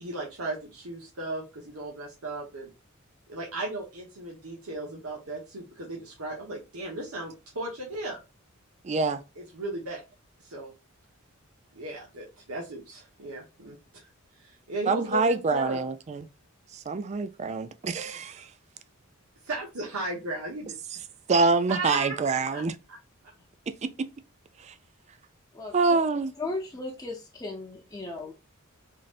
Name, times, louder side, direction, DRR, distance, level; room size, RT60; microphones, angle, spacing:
voice 1, 0.0-2.7 3.3-8.2 9.4-10.0 10.4-10.7 11.7-14.1 14.4-15.9 19.4-20.8 21.7-22.2 22.5-23.0, right 2 dB, 85° right, 1.1 m, -36 dB
voice 2, 8.8-9.2 14.9-16.3 16.9-18.4 21.3-22.7 23.8-24.1 25.7-26.3, right 4 dB, 30° right, 0.4 m, -25 dB
voice 3, 26.4-28.3, left 2 dB, 15° left, 0.6 m, -36 dB
3.9 x 3.1 x 2.5 m
head